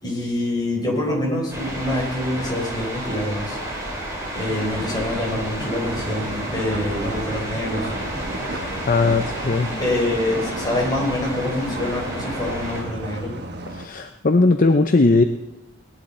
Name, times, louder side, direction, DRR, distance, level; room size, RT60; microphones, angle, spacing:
voice 1, 0.0-3.6 4.3-7.9 9.8-13.3, left 1 dB, 20° left, -2 dB, 4.1 m, -25 dB
sound 1, 1.5-12.8, right 1 dB, 15° right, 4.0 m, -31 dB
sound 2, 4.4-12.5, left 1 dB, 65° left, 1.5 m, -38 dB
sound 3, 5.8-13.9, right 2 dB, 50° right, 1.3 m, -35 dB
voice 2, 8.5-9.7 13.7-15.2, left 3 dB, 40° left, 7 dB, 0.6 m, -18 dB
19.0 x 11.0 x 4.3 m, 1.0 s
head